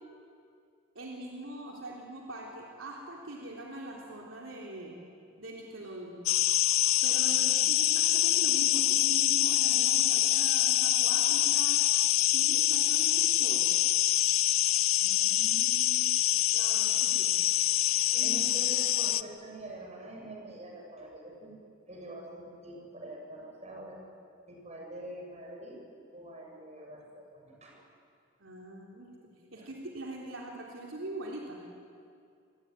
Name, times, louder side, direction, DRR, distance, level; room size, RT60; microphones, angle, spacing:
voice 1, 1.0-4.9 5.4-6.2 7.0-11.8 12.3-13.7 16.0-16.1 16.5-17.3 18.1-18.4 28.4-29.1 29.5-31.6, right 1 dB, 70° right, -2 dB, 3.7 m, -42 dB
sound 1, 6.3-19.2, left 14 dB, 85° left, 0.6 m, -25 dB
voice 2, 15.0-16.3 17.6-21.6 21.9-24.0 24.5-25.8 26.1-27.8 29.6-29.7, right 1 dB, 35° right, 0 dB, 7.1 m, -45 dB
27.5 x 22.5 x 9.7 m, 2.4 s
head